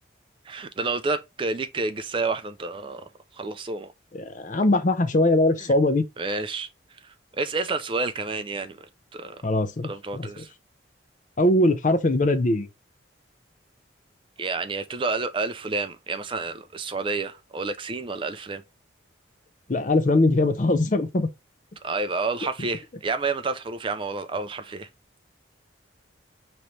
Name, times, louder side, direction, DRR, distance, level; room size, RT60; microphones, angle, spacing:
voice 1, 0.5-3.9 5.6-5.7 6.2-8.8 9.1-9.4 9.8-10.5 14.4-18.6 21.8-24.9, right 3 dB, 25° right, 0.3 m, -30 dB
voice 2, 4.1-6.0 9.4-10.4 11.4-12.7 19.7-21.3, left 2 dB, 40° left, 0.5 m, -21 dB
5.1 x 3.0 x 3.2 m
head